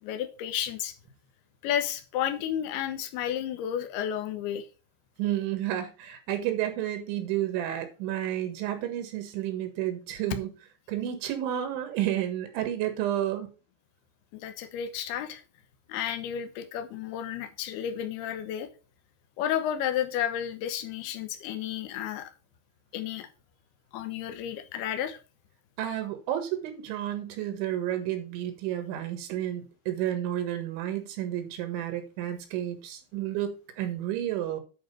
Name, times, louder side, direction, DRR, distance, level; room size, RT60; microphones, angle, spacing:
voice 1, 0.0-0.9 1.6-4.7 14.3-15.4 15.9-18.7 19.4-22.3 22.9-23.3 23.9-25.2, left 10 dB, 70° left, 2.7 m, -32 dB
voice 2, 5.2-10.5 10.9-13.5 25.8-34.6, right 12 dB, 85° right, 3.9 m, -31 dB
10.5 x 4.7 x 5.2 m
omnidirectional pair, 5.3 m